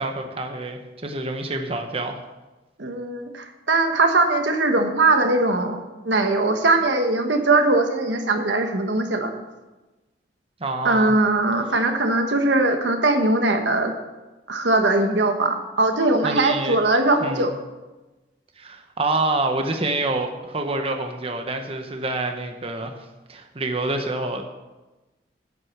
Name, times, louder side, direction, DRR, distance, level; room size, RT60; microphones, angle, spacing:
voice 1, 0.0-2.2 10.6-11.1 16.2-16.8 17.2-17.5 18.6-24.5, right 2 dB, 35° right, 5 dB, 0.9 m, -27 dB
voice 2, 2.8-9.3 10.8-13.9 14.5-17.6, right 2 dB, 85° right, 5 dB, 1.3 m, -20 dB
9.7 x 9.4 x 5.9 m, 1.1 s
head